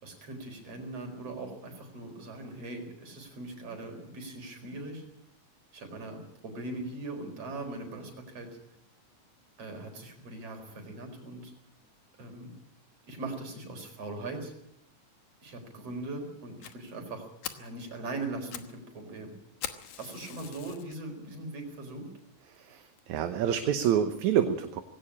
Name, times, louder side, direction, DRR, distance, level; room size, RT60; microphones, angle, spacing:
voice 1, 0.0-5.0 5.7-8.5 9.6-11.5 12.2-12.5 13.1-14.5 15.4-17.3 17.6-19.4 20.0-22.1, right 2 dB, 45° right, 4 dB, 5.4 m, -40 dB
Fire, 16.6-16.7 17.1-17.2 17.4-17.7 18.3-18.7 19.0-19.1 19.6-21.0 21.5-21.6 22.2-22.3 22.6-22.7 23.0-23.1, left 10 dB, 70° left, 2.5 m, -41 dB
voice 2, 22.5-24.8, right 9 dB, 70° right, 8 dB, 2.3 m, -28 dB
18.5 x 17.0 x 8.6 m, 0.72 s
omnidirectional pair, 3.8 m